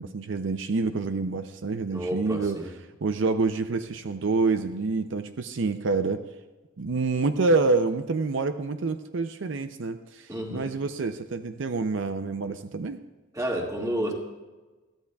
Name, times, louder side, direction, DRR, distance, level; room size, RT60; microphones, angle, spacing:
voice 1, 0.0-2.6 3.0-6.2 6.8-13.0, right 3 dB, 75° right, 9 dB, 0.5 m, -27 dB
voice 2, 1.9-2.7 10.3-10.7 13.3-14.1, equal, 20° right, -1 dB, 2.0 m, -30 dB
21.5 x 14.0 x 2.3 m, 1.2 s
head